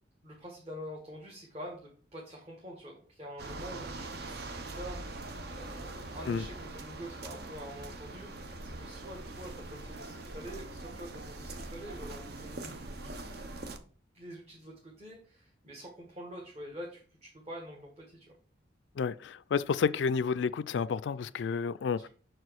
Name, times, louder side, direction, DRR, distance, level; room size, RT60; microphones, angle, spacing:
voice 1, 0.2-18.3, equal, 35° right, 1.4 m, -46 dB
sound 1, 3.4-13.8, right 2 dB, 55° right, 0.8 m, -42 dB
voice 2, 19.0-22.1, left 6 dB, 70° left, 0.3 m, -30 dB
6.1 x 4.8 x 4.6 m
head